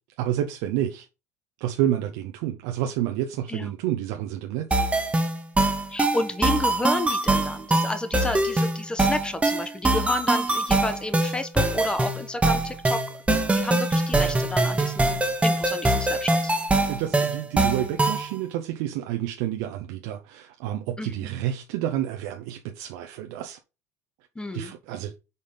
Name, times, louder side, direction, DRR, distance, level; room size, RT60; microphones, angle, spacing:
voice 1, 0.2-1.1 1.6-4.8 16.8-23.6 24.5-25.1, right 12 dB, 70° right, 0.7 m, -29 dB
sound 1, 4.7-18.3, right 2 dB, 15° right, 1.2 m, -23 dB
voice 2, 5.9-13.0 13.3-16.5 21.0-21.3 24.3-24.7, left 2 dB, 10° left, 1.1 m, -31 dB
5.3 x 4.1 x 5.2 m
hypercardioid pair, 80°, 8 cm